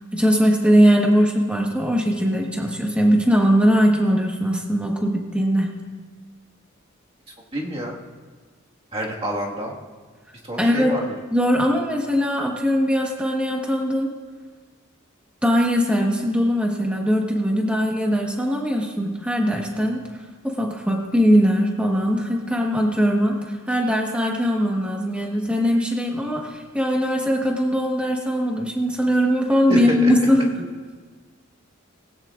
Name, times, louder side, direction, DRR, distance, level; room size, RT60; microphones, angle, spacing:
voice 1, 0.1-5.7 10.6-10.9 11.3-14.1 15.4-20.0 20.4-30.6, equal, 5° right, 0 dB, 1.4 m, -20 dB
voice 2, 7.5-8.0 8.9-9.7 10.4-11.0 29.7-30.1, right 1 dB, 25° right, -2 dB, 1.8 m, -27 dB
18.5 x 16.5 x 2.5 m, 1.5 s
head